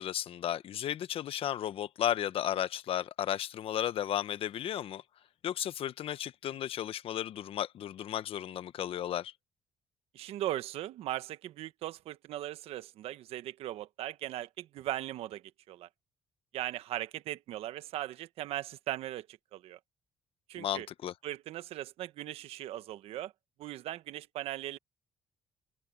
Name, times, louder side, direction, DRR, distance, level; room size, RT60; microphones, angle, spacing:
voice 1, 0.0-5.0 5.4-9.3 20.6-21.1, left 11 dB, 70° left, 1.1 m, -34 dB
voice 2, 10.1-15.9 16.5-19.3 19.5-19.8 20.5-20.9 21.2-23.3 23.6-24.8, right 14 dB, 80° right, 1.3 m, -38 dB
open air
supercardioid pair, 65°, 10 cm